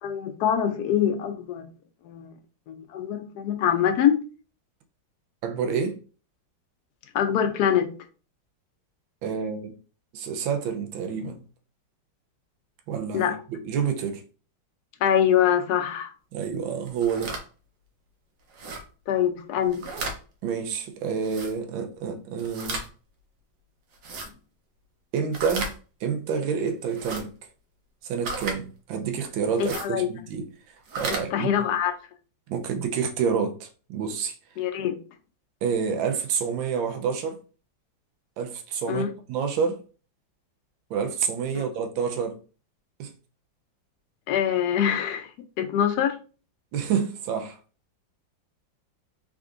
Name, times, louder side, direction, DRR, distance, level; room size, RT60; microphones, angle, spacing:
voice 1, 0.0-1.7 2.0-2.4 2.7-4.2 7.1-7.9 13.1-13.4 15.0-16.1 19.1-19.8 29.6-30.1 31.1-31.9 34.6-35.0 38.9-39.1 44.3-45.3 45.6-46.1, left 9 dB, 70° left, 1.0 m, -24 dB
voice 2, 5.4-6.0 9.2-9.7 10.1-11.4 12.9-14.2 16.3-17.3 20.4-22.8 25.1-27.3 28.0-30.5 31.0-31.5 32.5-34.3 35.6-37.4 38.4-39.8 40.9-42.4 43.0-43.1 46.7-47.6, right 6 dB, 85° right, 1.4 m, -28 dB
sound 1, 16.9-17.4 18.5-18.8 19.6-20.2 21.2-21.5 22.4-22.9 23.9-24.3 25.3-25.7 26.9-27.2 28.2-28.6 29.5-29.9 30.8-31.2, right 3 dB, 65° right, 1.3 m, -33 dB
3.7 x 3.5 x 2.4 m
omnidirectional pair, 2.1 m